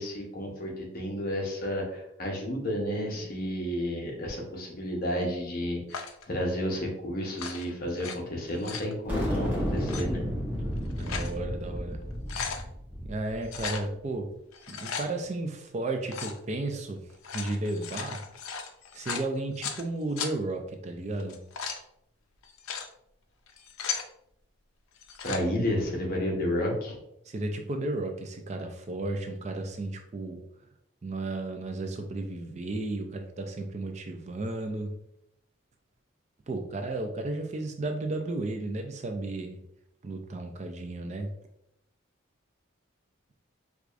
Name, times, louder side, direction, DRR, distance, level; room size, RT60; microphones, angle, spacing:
voice 1, 0.0-10.2 25.2-27.0, equal, 45° left, -1 dB, 0.8 m, -31 dB
sound 1, 5.9-6.3 7.3-8.2 8.5-8.9 9.8-10.0 10.7-11.3 11.8-11.9 12.1-12.6 13.5-13.9 14.5-15.1 16.1-16.4 17.1-19.8 20.2-20.3 21.2-21.8 22.4-22.9 23.5-24.1 25.0-25.4, left 6 dB, 85° left, 0.4 m, -36 dB
sound 2, 9.1-13.8, equal, 10° right, 0.8 m, -32 dB
voice 2, 10.9-12.0 13.0-14.3 14.7-17.1 17.3-18.2 18.9-21.4 27.3-30.5 31.0-35.0 36.5-39.6 40.0-41.3, right 2 dB, 35° right, 4 dB, 0.3 m, -33 dB
4.6 x 2.3 x 2.4 m, 0.77 s
head